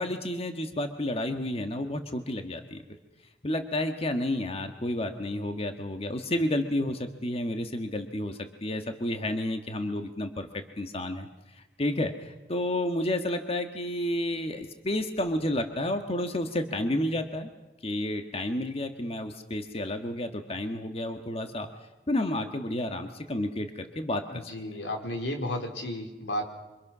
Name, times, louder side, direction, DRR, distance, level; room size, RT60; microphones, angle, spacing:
voice 1, 0.0-2.8 3.4-17.5 17.8-21.7 22.1-24.5, left 1 dB, 35° left, 6 dB, 1.6 m, -31 dB
voice 2, 24.3-26.5, left 1 dB, 85° left, 3 dB, 4.3 m, -33 dB
28.0 x 26.0 x 6.2 m, 1.1 s
head